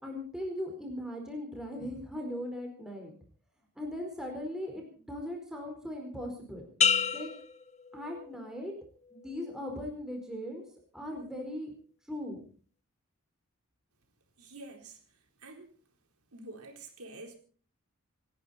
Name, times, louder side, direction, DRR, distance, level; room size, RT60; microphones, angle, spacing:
voice 1, 0.0-3.1 3.8-6.6 7.1-7.3 7.9-8.7 9.1-10.6 10.9-11.7 12.1-12.4, left 1 dB, 5° right, 4.6 m, -39 dB
sound 1, 6.8-8.6 9.1-9.5, left 7 dB, 30° left, 1.1 m, -30 dB
voice 2, 14.4-15.8 16.3-17.4, right 2 dB, 80° right, 4.0 m, -48 dB
28.5 x 11.0 x 4.3 m
head